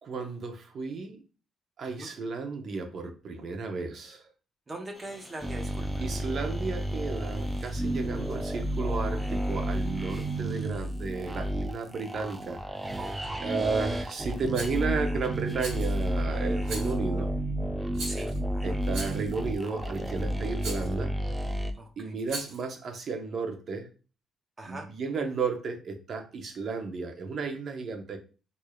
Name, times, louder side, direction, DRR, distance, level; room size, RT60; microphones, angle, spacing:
voice 1, 0.0-1.2 1.8-4.3 6.0-17.3 18.6-21.2 22.0-23.9 24.7-28.2, right 4 dB, 55° right, 0.8 m, -33 dB
voice 2, 4.7-6.0 13.0-13.5 18.0-18.3 21.8-22.1 24.6-24.9, right 2 dB, 30° right, 0.9 m, -41 dB
sound 1, 4.9-10.7, left 1 dB, 10° left, 1.2 m, -54 dB
sound 2, 5.4-21.7, right 1 dB, 10° right, 0.5 m, -31 dB
Rattle, 14.5-14.8 15.6-16.0 16.6-17.0 17.9-18.4 18.9-19.3 20.6-20.9 22.2-22.7, right 2 dB, 75° right, 1.5 m, -39 dB
4.8 x 2.7 x 2.3 m
cardioid pair, 90°, 0 cm